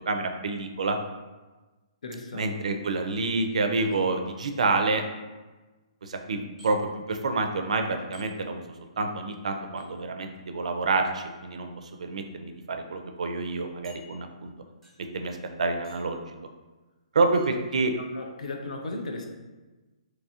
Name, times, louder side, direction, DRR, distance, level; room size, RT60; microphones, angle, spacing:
voice 1, 0.1-1.0 2.3-5.0 6.0-8.6 9.0-14.5 15.1-16.4 17.1-17.9, right 3 dB, 75° right, 5 dB, 0.4 m, -28 dB
voice 2, 2.0-2.5 18.1-19.3, left 2 dB, 80° left, 3 dB, 0.5 m, -36 dB
sound 1, 3.8-4.4 6.6-6.7 8.1-8.3 9.8-9.9 11.2-11.5 12.2-12.3 12.7-12.8 13.8-14.5 14.8-15.2 15.8-16.2 17.3-17.5, left 1 dB, 5° right, 0.9 m, -54 dB
2.9 x 2.4 x 2.7 m, 1.2 s
hypercardioid pair, 150°, 4 cm